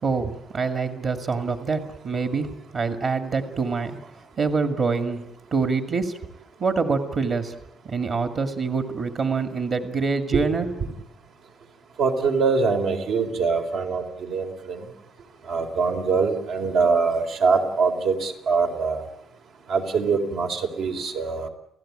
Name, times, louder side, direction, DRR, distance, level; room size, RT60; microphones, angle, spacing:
voice 1, 0.0-2.5 2.7-3.9 4.4-5.2 5.5-6.2 6.6-7.5 7.9-10.7, right 4 dB, 45° right, 7 dB, 2.2 m, -25 dB
voice 2, 10.3-10.7 12.0-14.9 15.5-19.0 19.7-21.5, right 4 dB, 80° right, 4 dB, 4.1 m, -23 dB
30.0 x 16.0 x 8.8 m, 0.82 s
cardioid pair, 140°, 0 cm